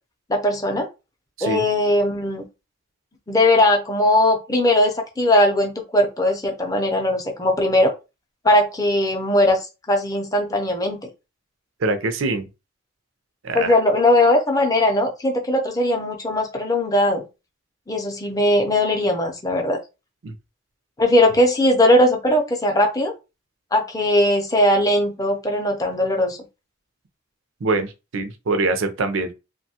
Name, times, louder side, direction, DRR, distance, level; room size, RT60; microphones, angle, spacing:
voice 1, 0.3-0.9 1.4-2.4 3.3-7.9 8.4-9.6 9.9-11.0 13.5-17.2 17.9-19.8 21.0-23.1 23.7-26.4, left 1 dB, 20° left, 0.5 m, -19 dB
voice 2, 11.8-12.5 13.4-13.8 20.2-20.3 27.6-29.3, right 3 dB, 80° right, 0.5 m, -24 dB
3.0 x 2.2 x 2.7 m
head